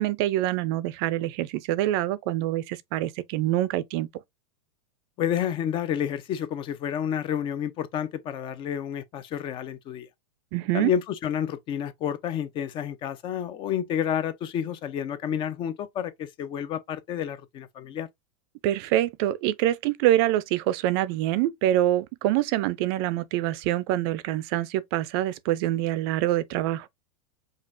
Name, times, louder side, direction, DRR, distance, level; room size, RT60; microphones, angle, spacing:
voice 1, 0.0-4.1 10.5-10.9 18.6-26.9, right 14 dB, 45° right, 0.4 m, -25 dB
voice 2, 5.2-10.1 10.7-18.1, left 9 dB, 30° left, 0.4 m, -30 dB
5.2 x 2.4 x 2.5 m
supercardioid pair, 135°, 18 cm